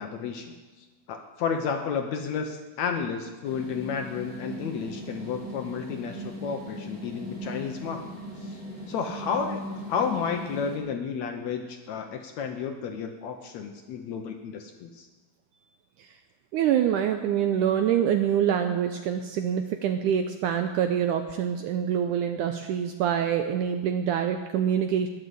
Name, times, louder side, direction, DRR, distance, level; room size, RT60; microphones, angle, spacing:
voice 1, 0.0-8.0 8.4-9.6 9.9-15.1, left 6 dB, 80° left, 5 dB, 1.6 m, -32 dB
sound 1, 3.4-10.8, equal, 15° right, 4.3 m, -39 dB
voice 2, 16.5-25.1, right 9 dB, 80° right, 7 dB, 1.9 m, -25 dB
20.5 x 6.8 x 7.7 m, 1.3 s
omnidirectional pair, 4.2 m